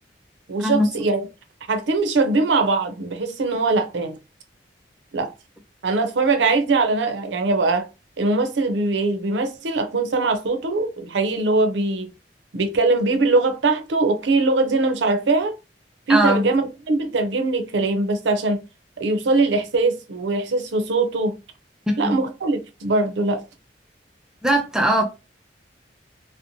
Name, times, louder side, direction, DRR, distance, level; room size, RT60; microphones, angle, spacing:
voice 1, 0.5-1.3 1.7-4.2 5.1-5.3 5.8-7.9 8.2-12.1 12.5-15.5 16.1-18.6 19.0-21.3 22.0-23.4, right 3 dB, 85° right, 0.5 m, -21 dB
voice 2, 16.1-16.4 21.9-22.2 24.4-25.0, right 1 dB, 5° right, 0.3 m, -20 dB
2.6 x 2.1 x 2.8 m
head